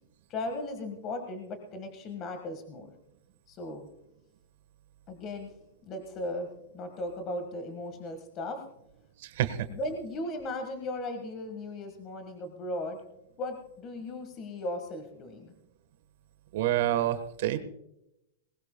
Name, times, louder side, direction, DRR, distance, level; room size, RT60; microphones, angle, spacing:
voice 1, 0.3-2.9 3.5-3.9 5.1-5.5 5.8-8.6 9.7-13.0 13.4-15.5, left 1 dB, 25° left, 6 dB, 1.6 m, -37 dB
voice 2, 9.2-9.7 16.5-17.6, right 12 dB, 60° right, 10 dB, 1.2 m, -28 dB
20.0 x 18.0 x 2.2 m, 0.83 s
supercardioid pair, 160°, 0 cm